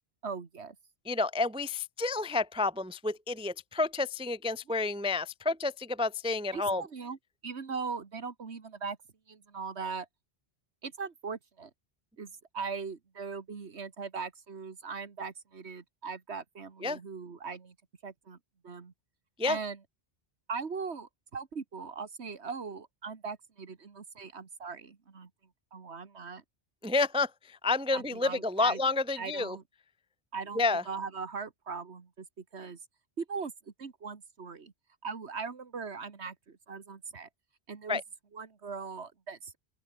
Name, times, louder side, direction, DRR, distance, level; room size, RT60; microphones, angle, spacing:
voice 1, 0.2-0.8 6.5-7.2 7.4-9.0 9.3-10.1 10.8-11.7 12.2-17.7 18.0-18.4 18.6-18.9 19.5-19.8 20.5-25.3 25.7-26.4 27.9-28.8 29.2-29.6 30.3-32.8 33.2-33.5 33.8-34.7 35.0-37.3 37.7-38.0 38.3-39.6, right 5 dB, 90° right, 2.0 m, -40 dB
voice 2, 1.1-6.8 16.8-17.0 19.4-19.6 26.8-29.6 30.6-30.8 37.9-38.0, left 3 dB, 10° right, 0.3 m, -30 dB
open air
omnidirectional pair, 1.1 m